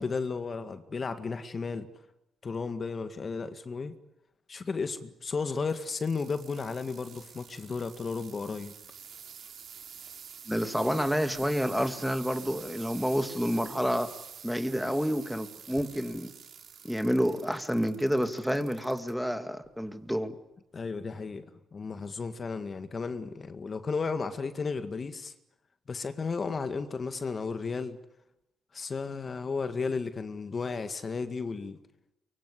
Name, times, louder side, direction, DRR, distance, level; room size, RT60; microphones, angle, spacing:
voice 1, 0.0-1.9 2.4-3.9 4.5-8.7 20.7-21.4 21.7-25.3 25.9-28.0 28.7-31.8, left 4 dB, 40° left, 9 dB, 1.9 m, -34 dB
sound 1, 5.6-19.1 19.6-20.1 20.8-20.9, right 7 dB, 65° right, 3.3 m, -48 dB
voice 2, 10.5-14.1 14.4-16.3 16.8-20.4, equal, ahead, 8 dB, 2.2 m, -29 dB
24.0 x 23.5 x 10.0 m, 0.89 s
cardioid pair, 90°, 0 cm